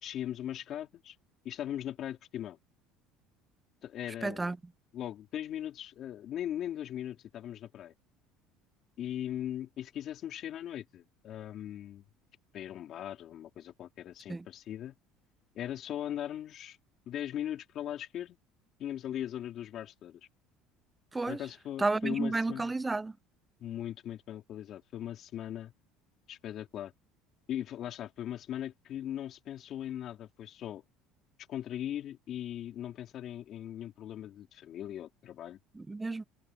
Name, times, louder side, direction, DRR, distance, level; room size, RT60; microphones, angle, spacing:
voice 1, 0.0-1.1 1.4-2.6 3.8-4.5 4.9-7.9 9.0-12.0 12.5-14.9 15.5-16.8 17.0-18.4 18.8-20.2 21.3-22.7 23.6-25.7 26.3-26.9 27.5-30.8 31.5-35.6, left 11 dB, 45° left, 3.4 m, -39 dB
voice 2, 4.2-4.6 14.3-14.5 21.1-21.4 21.8-23.2 35.7-36.2, right 3 dB, 10° right, 0.3 m, -31 dB
cardioid pair, 140°, 0 cm